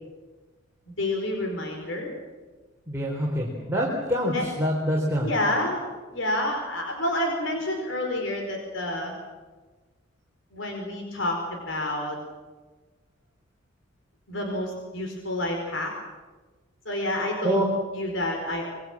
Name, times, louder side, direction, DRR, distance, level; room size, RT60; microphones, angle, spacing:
voice 1, 0.9-2.1 4.3-4.4 5.2-5.8 6.1-9.2 10.5-12.2 14.3-15.9 16.8-18.6, left 1 dB, 75° left, 2 dB, 4.9 m, -29 dB
voice 2, 2.9-5.3 17.4-17.6, right 1 dB, 10° right, -3 dB, 4.2 m, -25 dB
26.5 x 23.5 x 7.5 m, 1.3 s
head